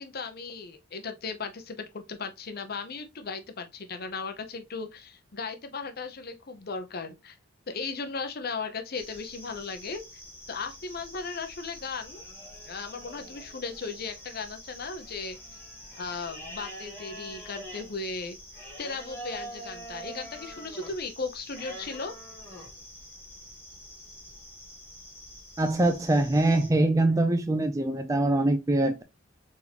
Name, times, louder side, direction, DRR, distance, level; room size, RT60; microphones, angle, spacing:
voice 1, 0.0-7.4 7.7-10.0 10.5-12.2 12.7-15.4 15.9-18.4 18.8-22.1, left 4 dB, 50° left, 0.7 m, -36 dB
sound 1, 8.9-26.7, equal, 10° left, 1.5 m, -45 dB
voice 2, 25.6-29.0, right 2 dB, 15° right, 0.4 m, -23 dB
4.0 x 3.7 x 2.9 m
head